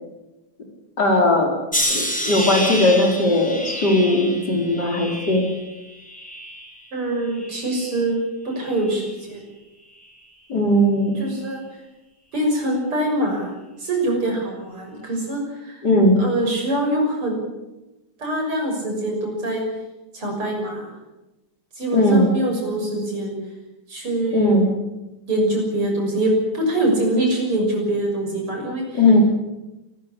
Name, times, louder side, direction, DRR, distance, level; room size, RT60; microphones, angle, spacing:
voice 1, 1.0-1.5 1.9-5.5 10.5-11.2 15.8-16.2 21.9-22.3 24.3-24.7 28.9-29.2, left 1 dB, 45° left, 1 dB, 5.0 m, -18 dB
sound 1, 1.7-6.9 7.3-8.0 8.7-9.0, equal, 5° left, 4.0 m, -29 dB
voice 2, 6.9-9.5 11.2-11.8 12.3-13.5 13.8-15.8 16.2-17.4 18.2-19.6 20.1-20.9 21.8-23.3 23.9-24.6 25.3-29.0, right 1 dB, 75° right, 1 dB, 7.4 m, -24 dB
28.0 x 14.0 x 8.4 m, 1.0 s
omnidirectional pair, 2.4 m